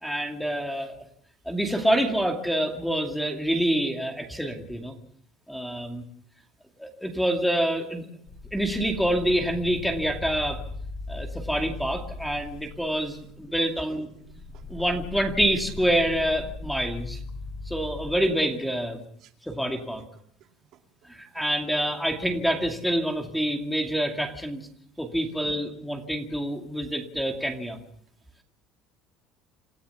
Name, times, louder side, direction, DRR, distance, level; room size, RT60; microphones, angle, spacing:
voice 1, 0.0-1.0 1.5-4.9 5.5-6.0 6.8-8.1 8.5-10.6 11.1-14.1 14.7-17.2 17.7-19.0 19.4-20.0 21.1-24.7 25.0-27.8, right 1 dB, ahead, 4 dB, 2.4 m, -27 dB
sound 1, 8.3-13.8 14.2-18.2, left 3 dB, 35° left, 7.3 m, -39 dB
voice 2, 13.3-14.7 19.2-19.3 20.4-20.8, right 9 dB, 50° right, 5 dB, 2.4 m, -54 dB
27.5 x 15.0 x 7.0 m, 0.64 s
cardioid pair, 160°, 0 cm